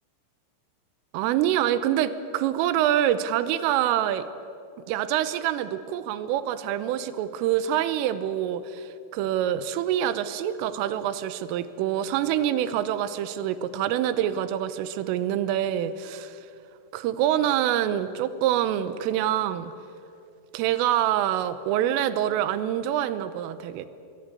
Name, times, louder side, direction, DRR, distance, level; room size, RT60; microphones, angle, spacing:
voice 1, 1.1-4.3 4.9-16.4 16.9-19.7 20.5-23.9, right 11 dB, 90° right, 13 dB, 3.5 m, -26 dB
26.5 x 21.0 x 8.2 m, 2.5 s
omnidirectional pair, 5.9 m